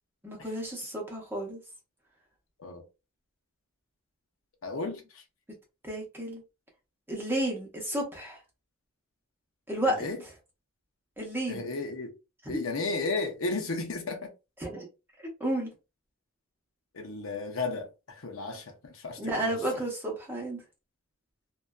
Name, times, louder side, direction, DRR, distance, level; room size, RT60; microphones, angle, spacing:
voice 1, 0.2-1.6 5.8-6.4 7.1-8.4 9.7-10.0 11.2-11.7 12.4-12.6 14.6-14.9 15.4-15.7 19.2-20.6, right 1 dB, 10° right, 0.7 m, -32 dB
voice 2, 4.6-5.2 9.9-10.2 11.5-12.1 12.5-14.3 16.9-19.8, left 3 dB, 65° left, 0.6 m, -34 dB
2.5 x 2.2 x 2.2 m
head